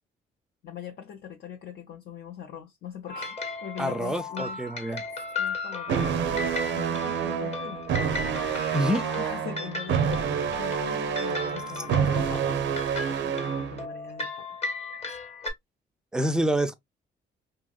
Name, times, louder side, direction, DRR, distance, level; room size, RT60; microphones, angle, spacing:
voice 1, 0.6-4.6 5.4-7.9 8.6-8.8 9.1-14.5 15.0-15.2, left 9 dB, 60° left, 0.5 m, -41 dB
sound 1, 3.1-15.5, left 4 dB, 30° left, 0.9 m, -36 dB
voice 2, 3.8-5.0 8.7-9.0 16.1-16.7, right 1 dB, 5° right, 0.4 m, -26 dB
sound 2, 5.9-13.9, right 8 dB, 70° right, 0.5 m, -28 dB
2.8 x 2.7 x 2.2 m
cardioid pair, 90°, 20 cm